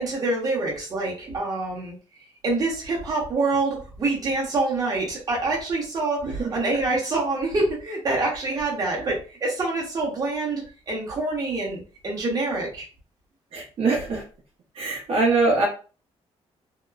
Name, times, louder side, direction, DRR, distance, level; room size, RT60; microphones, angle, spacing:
voice 1, 0.0-1.9 2.4-12.9, right 2 dB, 35° right, -3 dB, 1.0 m, -26 dB
voice 2, 6.2-6.5 13.5-14.2 14.7-15.7, right 3 dB, 55° right, -4 dB, 0.8 m, -23 dB
2.9 x 2.0 x 2.3 m, 0.36 s
cardioid pair, 140°, 11 cm